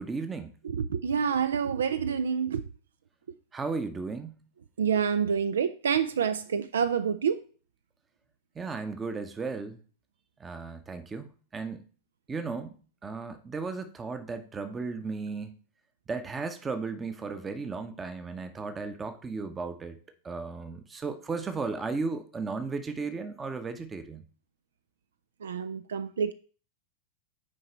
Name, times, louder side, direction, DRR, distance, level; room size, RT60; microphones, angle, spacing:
voice 1, 0.0-0.6 3.5-4.4 8.5-9.8 10.4-11.8 12.3-12.7 13.0-15.6 16.1-20.0 20.2-24.2, right 4 dB, 15° right, 0.8 m, -35 dB
voice 2, 0.6-2.6 4.8-7.4 25.4-26.3, right 7 dB, 65° right, 0.4 m, -27 dB
6.4 x 4.8 x 4.4 m
figure-of-eight pair, 90°, 0 cm